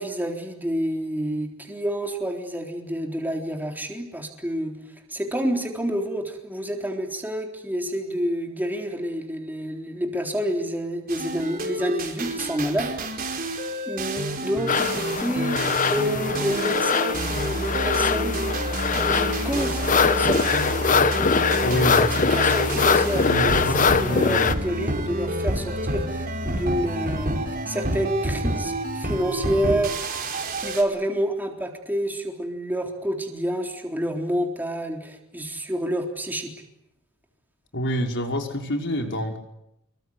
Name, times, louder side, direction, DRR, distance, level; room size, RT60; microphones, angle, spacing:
voice 1, 0.0-4.8 5.1-13.3 13.9-15.6 15.9-18.5 18.9-20.5 21.7-27.4 27.7-29.9 30.6-36.5, equal, 10° right, 2 dB, 3.8 m, -28 dB
sound 1, 11.1-30.8, right 1 dB, 45° right, 4.8 m, -28 dB
sound 2, 14.7-24.5, left 5 dB, 40° left, 1.1 m, -23 dB
voice 2, 21.6-22.1 23.2-24.5 37.7-39.4, equal, 60° left, 3 dB, 5.2 m, -27 dB
26.5 x 23.0 x 9.6 m, 0.83 s
head